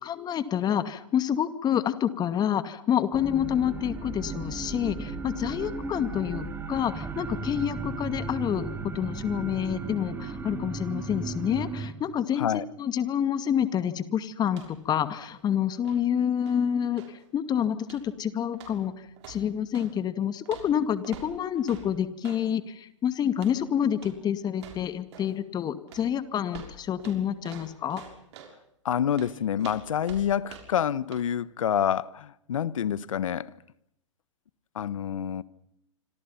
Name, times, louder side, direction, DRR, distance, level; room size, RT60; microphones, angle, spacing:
voice 1, 0.0-12.5 12.8-17.0 17.3-18.9 19.3-28.0, left 9 dB, 25° left, 2.3 m, -28 dB
sound 1, 3.1-11.9, right 4 dB, 15° right, 3.2 m, -35 dB
sound 2, 14.5-14.9 15.2-17.2 17.8-18.2 18.5-19.9 20.5-22.5 23.3-23.6 24.0-24.2 24.5-25.4 25.9-28.6 29.1-30.9 31.1-31.3, right 7 dB, 55° right, 6.6 m, -47 dB
voice 2, 28.8-33.5 34.7-35.4, left 9 dB, 75° left, 1.3 m, -27 dB
28.0 x 26.0 x 5.8 m
hypercardioid pair, 120°, 17 cm